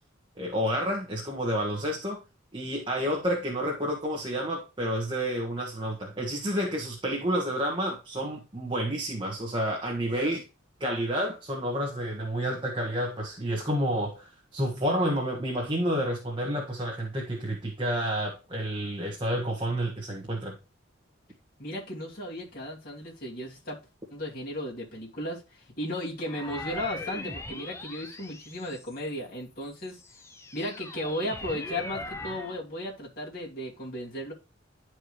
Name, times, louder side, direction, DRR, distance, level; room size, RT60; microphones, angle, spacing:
voice 1, 0.4-2.2 2.5-10.4 10.8-20.5, equal, 25° right, 1.5 m, -30 dB
voice 2, 21.6-23.8 24.1-30.0 30.5-34.3, left 1 dB, 45° left, 2.6 m, -35 dB
sound 1, 26.2-29.2 29.7-32.6, left 2 dB, 15° left, 0.7 m, -40 dB
11.0 x 4.7 x 3.1 m
head